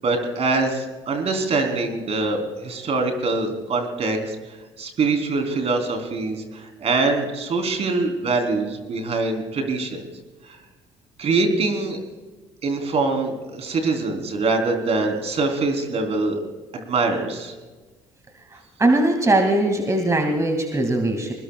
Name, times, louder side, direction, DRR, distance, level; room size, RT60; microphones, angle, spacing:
voice 1, 0.0-4.4 4.8-10.0 10.4-10.6 11.2-12.0 12.6-16.4 16.9-17.5, right 3 dB, 50° right, 5 dB, 3.8 m, -24 dB
voice 2, 18.8-21.3, right 2 dB, 25° right, 3 dB, 2.4 m, -20 dB
21.5 x 21.0 x 2.4 m, 1.2 s
hypercardioid pair, 65°, 13 cm